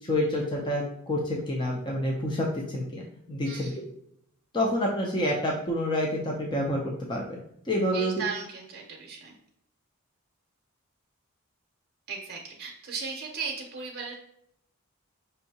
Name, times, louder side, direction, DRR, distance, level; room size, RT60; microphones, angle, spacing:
voice 1, 0.0-3.7 4.5-6.8 7.1-7.4 7.6-8.1, left 1 dB, 20° left, -1 dB, 0.5 m, -28 dB
voice 2, 3.4-3.9 7.9-9.4 12.1-14.1, right 5 dB, 45° right, 0 dB, 0.7 m, -36 dB
5.4 x 2.7 x 2.8 m, 0.73 s
head